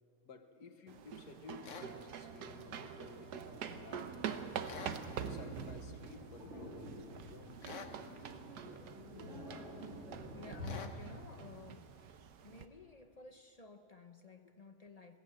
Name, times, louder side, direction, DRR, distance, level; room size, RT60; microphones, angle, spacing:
voice 1, 0.2-4.7 5.1-7.6, left 5 dB, 80° left, 2.0 m, -54 dB
sound 1, 0.9-12.7, right 8 dB, 80° right, 1.5 m, -46 dB
sound 2, 1.6-1.9 4.6-5.0 7.6-8.0 10.6-11.0, left 5 dB, 50° left, 1.4 m, -47 dB
sound 3, 3.5-10.8, equal, 45° right, 3.7 m, -50 dB
voice 2, 10.3-11.9 12.4-15.2, left 3 dB, 35° left, 0.6 m, -54 dB
20.5 x 17.0 x 9.1 m
omnidirectional pair, 1.7 m